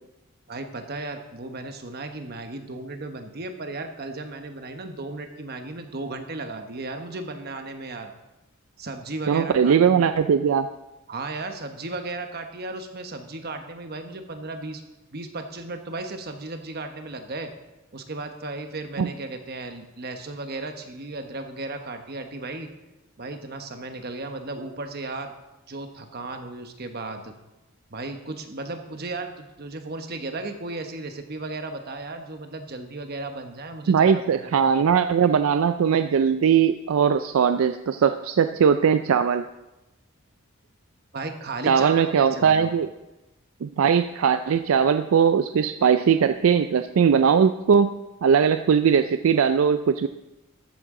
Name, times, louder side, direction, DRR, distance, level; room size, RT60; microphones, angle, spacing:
voice 1, 0.5-8.1 8.8-10.1 11.1-14.8 15.1-17.5 17.9-22.7 23.2-25.3 25.7-27.3 27.9-34.7 41.1-42.7, right 2 dB, 45° right, 6 dB, 1.0 m, -35 dB
voice 2, 9.3-10.7 19.0-19.1 33.9-39.4 41.7-42.9 43.6-50.1, right 7 dB, 75° right, 10 dB, 0.4 m, -20 dB
14.0 x 8.6 x 3.7 m, 1.0 s
head